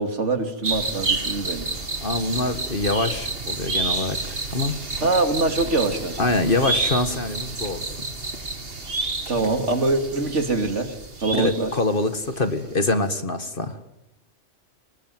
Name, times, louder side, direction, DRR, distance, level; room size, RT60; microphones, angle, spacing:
voice 1, 0.0-1.7 5.0-6.2 9.3-11.7, right 3 dB, 75° right, 6 dB, 3.1 m, -24 dB
sound 1, 0.6-12.3 12.6-12.7, right 3 dB, 55° right, 2.7 m, -30 dB
voice 2, 2.0-4.2 4.5-4.8 6.2-8.1 11.3-13.8, left 2 dB, 45° left, 9 dB, 1.9 m, -24 dB
25.0 x 20.5 x 9.2 m, 0.83 s
omnidirectional pair, 1.2 m